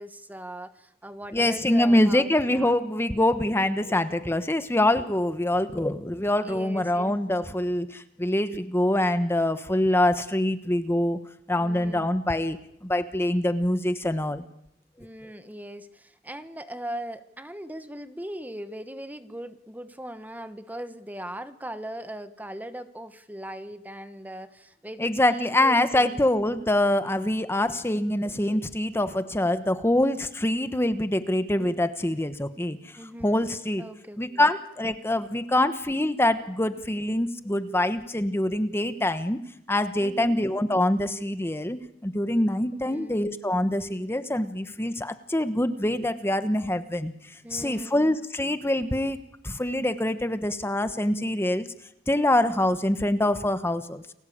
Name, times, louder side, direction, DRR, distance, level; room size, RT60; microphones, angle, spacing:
voice 1, 0.0-2.7 6.4-7.2 11.5-12.1 15.0-26.2 31.4-31.7 32.9-33.4 33.8-34.5 40.0-40.3 42.8-43.2 47.4-48.0, right 1 dB, 10° right, 11 dB, 1.2 m, -39 dB
voice 2, 1.3-11.2 11.5-14.4 25.0-33.8 34.2-39.4 39.7-51.7 52.1-54.0, left 1 dB, 15° left, 10 dB, 1.1 m, -25 dB
30.0 x 21.5 x 8.7 m, 0.78 s
head